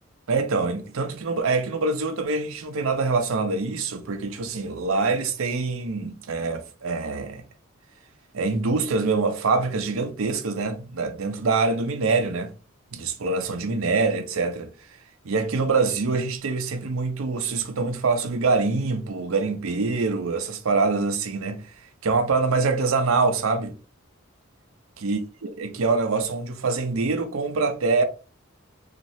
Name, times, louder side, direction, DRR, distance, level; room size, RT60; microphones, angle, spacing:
voice 1, 0.3-7.4 8.3-12.5 12.9-14.7 15.2-21.7 22.0-23.7 25.0-28.0, right 4 dB, 80° right, 0.6 m, -25 dB
2.7 x 2.4 x 3.0 m
head